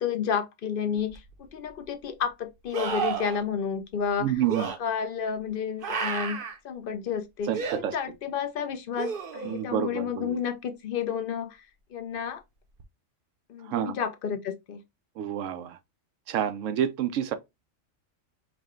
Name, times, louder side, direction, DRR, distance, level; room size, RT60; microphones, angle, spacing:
voice 1, 0.0-6.4 6.6-7.5 7.9-11.7 11.9-12.4 13.5-14.8, left 7 dB, 55° left, 0.7 m, -31 dB
sound 1, 1.1-1.2 2.7-3.4 4.5-4.8 5.8-6.6 7.5-7.8 9.0-9.6 12.8-12.9, right 6 dB, 50° right, 0.8 m, -31 dB
voice 2, 4.2-4.7 7.5-7.9 9.5-10.4 13.7-13.9 15.2-15.8 16.3-17.3, right 10 dB, 80° right, 1.0 m, -28 dB
4.7 x 2.2 x 3.5 m
omnidirectional pair, 1.3 m